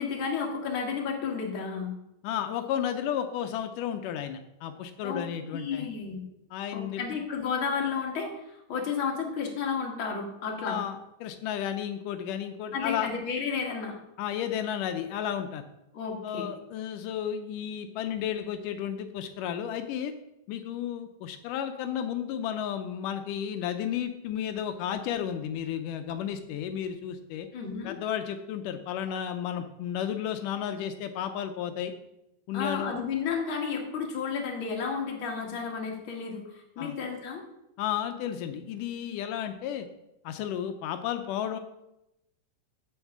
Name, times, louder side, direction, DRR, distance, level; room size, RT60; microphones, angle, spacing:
voice 1, 0.0-1.9 5.0-5.2 5.5-6.2 6.7-10.8 12.7-13.9 15.9-16.5 27.5-28.0 32.5-37.4, left 6 dB, 45° left, 0 dB, 2.4 m, -32 dB
voice 2, 2.2-5.9 6.5-7.1 10.6-13.1 14.2-15.7 16.2-20.1 20.5-27.5 27.8-31.9 32.5-33.0 36.8-36.9 37.8-39.9 40.2-41.6, left 9 dB, 85° left, 7 dB, 2.3 m, -33 dB
8.1 x 6.4 x 7.3 m, 0.85 s
omnidirectional pair, 3.6 m